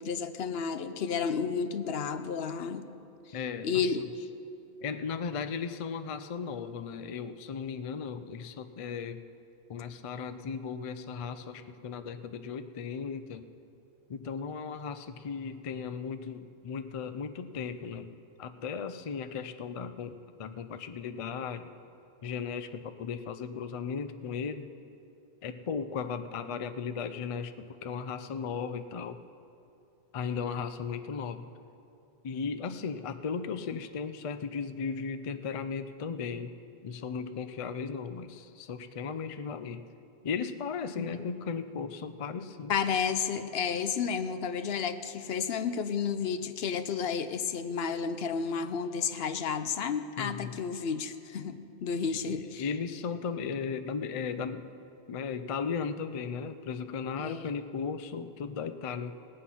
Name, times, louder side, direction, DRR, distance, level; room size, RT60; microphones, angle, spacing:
voice 1, 0.0-2.9 3.6-4.3 41.0-41.2 42.7-52.6 57.2-57.5, left 6 dB, 75° left, 10 dB, 0.9 m, -32 dB
voice 2, 3.3-3.7 4.0-4.1 4.8-9.2 9.7-13.4 14.1-18.1 18.4-21.7 22.2-24.7 25.4-29.2 30.1-31.5 32.2-36.5 36.8-39.8 40.2-42.7 50.2-50.6 52.1-54.7 55.1-59.2, left 6 dB, 45° left, 10 dB, 0.4 m, -36 dB
19.0 x 8.5 x 5.7 m, 2.7 s
omnidirectional pair, 1.1 m